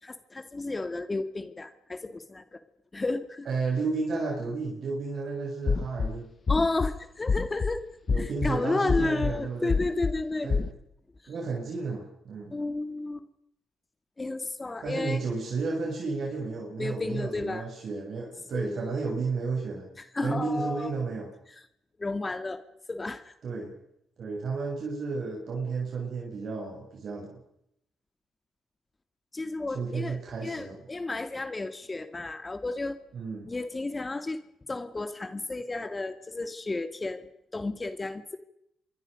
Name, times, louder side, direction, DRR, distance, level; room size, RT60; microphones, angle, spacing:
voice 1, 0.0-2.6 2.9-3.5 6.5-7.9 8.2-10.5 12.5-13.3 14.2-15.2 16.8-17.6 18.5-19.0 20.0-20.9 22.0-22.6 22.9-23.3 29.3-33.0 33.5-34.4 34.7-38.4, left 2 dB, 20° left, 10 dB, 2.0 m, -32 dB
voice 2, 3.5-6.3 8.1-9.8 10.4-10.7 11.3-12.5 14.8-19.9 20.2-21.3 23.4-23.7 24.2-27.4 29.7-30.8 33.1-33.5, right 4 dB, 55° right, -1 dB, 7.3 m, -32 dB
sound 1, 5.7-6.1 6.5-6.9 7.3-7.7 8.1-8.5 8.9-9.3 9.7-10.1 10.5-10.7, left 5 dB, 40° left, 1.4 m, -26 dB
27.0 x 23.5 x 5.2 m, 0.77 s
cardioid pair, 90°, 0 cm